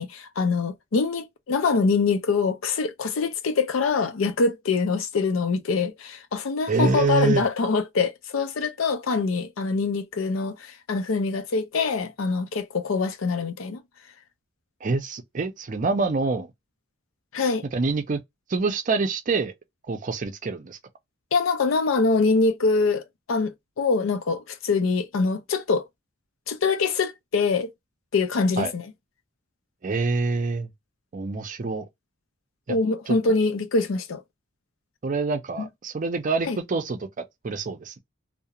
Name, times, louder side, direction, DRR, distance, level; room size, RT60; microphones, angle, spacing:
voice 1, 0.0-13.8 17.3-17.6 21.3-25.8 26.5-27.7 28.1-28.8 32.7-34.2 36.5-36.6, left 4 dB, 85° left, 0.5 m, -24 dB
voice 2, 6.7-7.4 14.8-16.5 17.7-18.2 18.5-19.5 19.9-20.8 28.6-28.7 29.8-30.7 31.1-31.9 32.7-32.8 33.1-33.2 35.0-37.9, right 4 dB, 40° right, 0.5 m, -26 dB
2.4 x 2.0 x 2.8 m
head